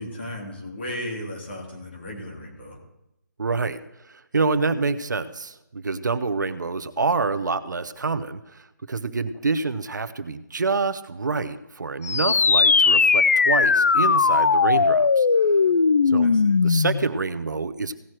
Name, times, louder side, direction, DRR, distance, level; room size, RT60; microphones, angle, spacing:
voice 1, 0.0-2.8 16.2-16.6, left 1 dB, 35° left, -1 dB, 3.1 m, -35 dB
voice 2, 3.4-15.5 16.1-16.3 16.6-17.9, right 4 dB, 70° right, 12 dB, 0.8 m, -27 dB
sound 1, 12.0-17.1, left 5 dB, 50° left, 0.4 m, -18 dB
17.0 x 6.3 x 4.5 m, 0.86 s
hypercardioid pair, 175°, 10 cm